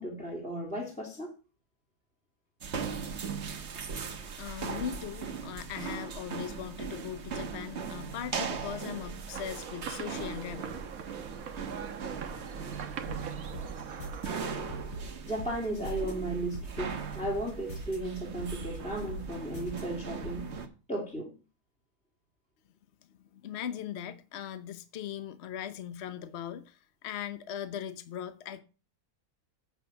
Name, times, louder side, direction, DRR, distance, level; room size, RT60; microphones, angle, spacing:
voice 1, 0.0-1.3 15.2-20.5 20.9-21.3, right 1 dB, 5° left, 2.6 m, -35 dB
sound 1, 2.6-20.7, right 5 dB, 55° right, 1.3 m, -39 dB
voice 2, 4.4-10.7 23.3-28.6, left 9 dB, 55° left, 1.0 m, -39 dB
sound 2, 9.3-14.9, right 7 dB, 75° right, 1.4 m, -42 dB
sound 3, 13.1-14.3 14.7-16.1 16.5-18.0 18.4-19.8 20.2-20.4, right 1 dB, 75° left, 4.5 m, -41 dB
8.6 x 7.1 x 5.8 m
omnidirectional pair, 1.5 m